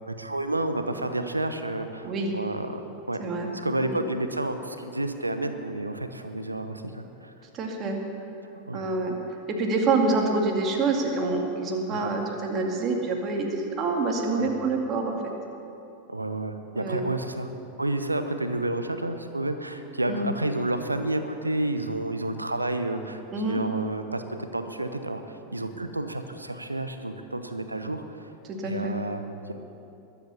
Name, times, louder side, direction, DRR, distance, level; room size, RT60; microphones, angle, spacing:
voice 1, 0.1-2.8 3.1-3.2 3.6-7.3 8.7-8.8 11.9-12.0 14.3-14.5 16.1-17.5 17.8-28.3 28.6-29.5, right 2 dB, 85° right, 8 dB, 1.0 m, -30 dB
voice 2, 7.5-8.0 8.7-9.1 9.5-15.1 16.7-17.0 20.1-20.3 23.3-23.6 28.5-28.9, right 3 dB, 30° right, 1 dB, 2.3 m, -26 dB
21.0 x 8.5 x 7.1 m, 2.9 s
figure-of-eight pair, 90°, 0 cm